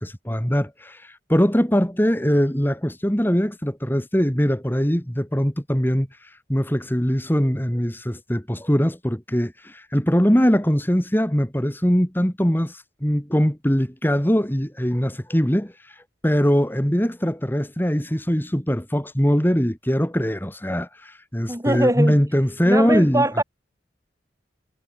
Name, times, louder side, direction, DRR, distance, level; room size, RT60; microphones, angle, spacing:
voice 1, 0.0-23.3, equal, 10° left, 2.6 m, -22 dB
voice 2, 21.5-22.2 22.6-23.4, right 1 dB, 20° right, 4.3 m, -22 dB
head